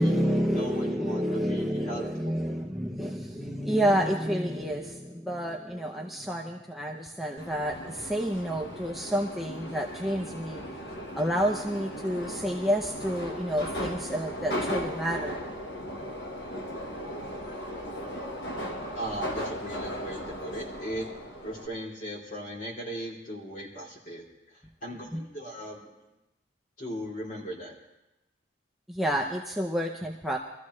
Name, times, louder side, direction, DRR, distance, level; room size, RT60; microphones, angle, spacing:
voice 1, 0.0-10.6 11.1-15.4 25.1-25.2 28.9-30.4, equal, ahead, -1 dB, 0.7 m, -29 dB
voice 2, 0.5-2.5 18.9-21.1 21.4-25.9 26.8-27.8, equal, 40° left, -2 dB, 3.3 m, -38 dB
Subway metro underground, 7.4-21.7, equal, 60° left, 1.5 m, -37 dB
23.0 x 14.0 x 3.2 m, 0.94 s
head